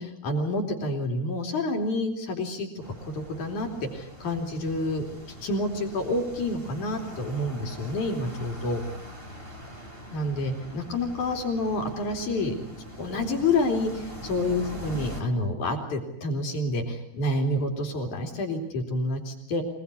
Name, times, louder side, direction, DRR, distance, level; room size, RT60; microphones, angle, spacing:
voice 1, 0.0-2.7 3.0-5.1 5.4-8.8 10.1-12.5 13.0-19.6, left 2 dB, 50° left, 4 dB, 4.2 m, -28 dB
sound 1, 2.8-15.2, equal, 15° right, 2.9 m, -42 dB
26.5 x 19.0 x 9.7 m, 0.80 s
omnidirectional pair, 4.8 m